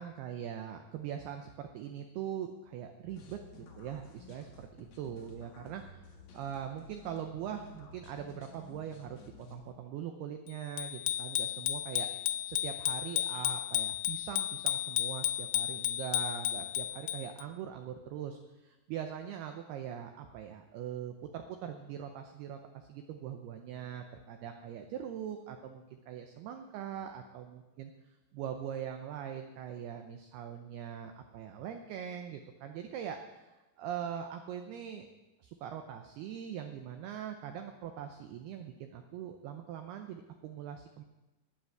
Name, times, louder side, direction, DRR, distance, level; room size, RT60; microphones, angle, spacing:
voice 1, 0.0-6.0 6.3-12.1 12.5-27.9 28.3-35.1 35.4-41.0, right 9 dB, 80° right, 5 dB, 2.4 m, -42 dB
sound 1, 3.1-9.7, left 3 dB, 55° left, 2.1 m, -53 dB
Bicycle bell, 10.8-17.4, left 13 dB, 85° left, 2.6 m, -33 dB
11.5 x 10.0 x 7.8 m, 1.1 s
omnidirectional pair, 5.5 m